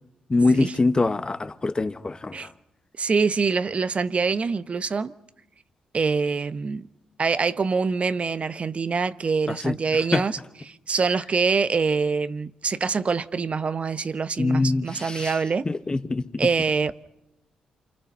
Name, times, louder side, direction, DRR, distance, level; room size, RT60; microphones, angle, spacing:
voice 1, 0.3-2.5 9.5-9.8 10.1-10.2 14.4-15.4 15.6-16.5, left 3 dB, 30° left, 1.4 m, -24 dB
voice 2, 3.0-5.1 5.9-6.9 7.2-10.3 10.7-15.7 16.4-16.9, right 5 dB, 45° right, 1.1 m, -25 dB
28.5 x 24.0 x 5.7 m
hypercardioid pair, 45°, 3 cm